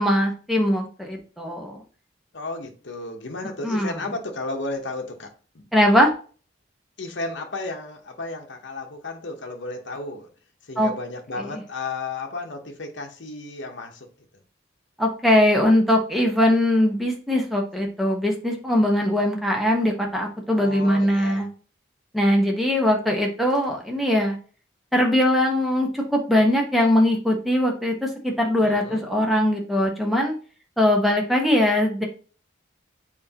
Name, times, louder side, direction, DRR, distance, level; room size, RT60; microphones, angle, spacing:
voice 1, 0.0-1.8 3.6-4.0 5.7-6.1 10.8-10.9 11.4-11.5 15.0-21.5 22.1-24.4 24.9-30.3 30.8-32.0, left 1 dB, ahead, 1.1 m, -21 dB
voice 2, 2.3-5.3 5.5-5.7 7.0-10.3 10.7-14.1 20.6-21.5 28.6-29.0, left 2 dB, 65° left, 1.0 m, -33 dB
7.5 x 4.5 x 2.9 m
head